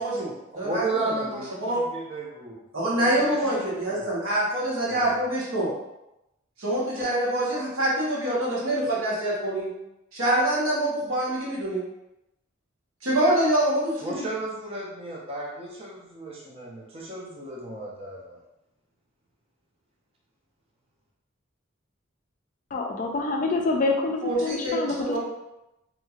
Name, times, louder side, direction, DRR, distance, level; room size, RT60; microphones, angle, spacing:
voice 1, 0.0-0.8 1.6-1.8 2.7-5.7 6.6-9.7 10.1-11.8 13.0-14.2 24.2-25.2, right 1 dB, 85° right, -6 dB, 1.1 m, -25 dB
voice 2, 0.5-2.6 2.9-4.1 5.0-5.2 14.0-18.4, right 2 dB, 30° right, -4 dB, 0.5 m, -34 dB
voice 3, 22.7-25.0, left 3 dB, 40° left, 2 dB, 0.3 m, -26 dB
3.0 x 2.7 x 2.4 m, 0.91 s
head